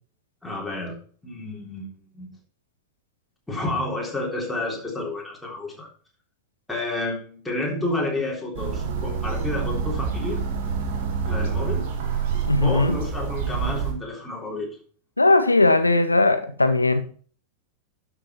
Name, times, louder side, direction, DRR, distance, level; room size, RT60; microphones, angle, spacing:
voice 1, 0.4-1.9 2.1-2.3 3.5-5.9 6.7-10.4 11.3-11.9 12.6-14.8, left 2 dB, 5° left, 3.6 m, -30 dB
sound 1, 8.5-13.9, right 6 dB, 50° right, 2.0 m, -27 dB
voice 2, 12.5-13.0 15.2-17.1, left 2 dB, 80° left, 0.9 m, -19 dB
12.0 x 6.1 x 4.4 m
figure-of-eight pair, 90°, 0 cm